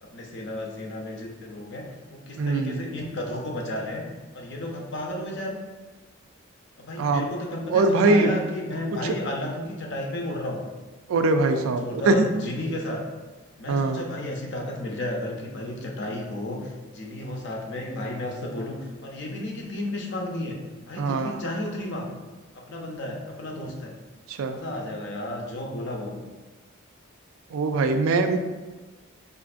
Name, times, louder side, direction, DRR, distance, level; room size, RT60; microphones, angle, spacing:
voice 1, 0.0-4.0 4.3-5.6 6.8-10.6 11.3-13.0 13.6-20.6 20.9-22.1 22.6-23.9 24.5-26.2, left 1 dB, 60° left, 1 dB, 0.6 m, -33 dB
voice 2, 2.4-2.8 7.0-7.2 7.7-8.3 9.0-9.1 11.1-12.3 13.7-14.0 21.0-21.4 24.3-24.6 27.5-28.4, right 3 dB, 90° right, 7 dB, 0.4 m, -22 dB
5.1 x 2.5 x 2.4 m, 1.3 s
head